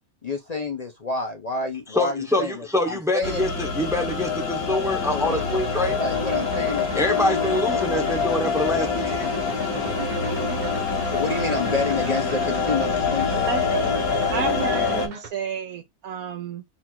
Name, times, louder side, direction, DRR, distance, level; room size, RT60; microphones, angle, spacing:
voice 1, 0.2-3.5 5.1-5.4 6.0-7.0 11.0-13.9, left 3 dB, 45° left, 0.5 m, -29 dB
voice 2, 1.9-6.0 7.0-9.3, left 1 dB, 5° right, 0.7 m, -25 dB
sound 1, 3.2-15.1, left 5 dB, 75° left, 1.6 m, -25 dB
sound 2, 5.3-15.3, right 5 dB, 45° right, 0.6 m, -38 dB
voice 3, 13.5-13.9 14.3-16.6, right 7 dB, 85° right, 1.2 m, -31 dB
4.2 x 2.4 x 4.3 m
omnidirectional pair, 1.5 m